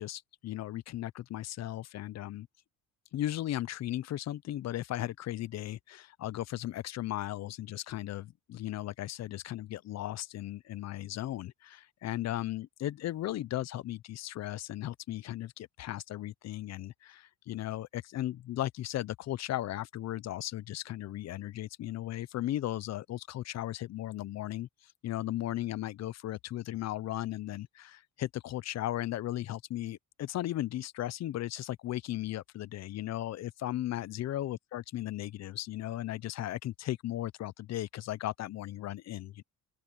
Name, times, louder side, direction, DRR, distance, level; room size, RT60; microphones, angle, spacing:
voice 1, 0.0-2.5 3.1-24.7 25.0-39.4, left 14 dB, 50° left, 0.5 m, -36 dB
open air
cardioid pair, 175°, 35 cm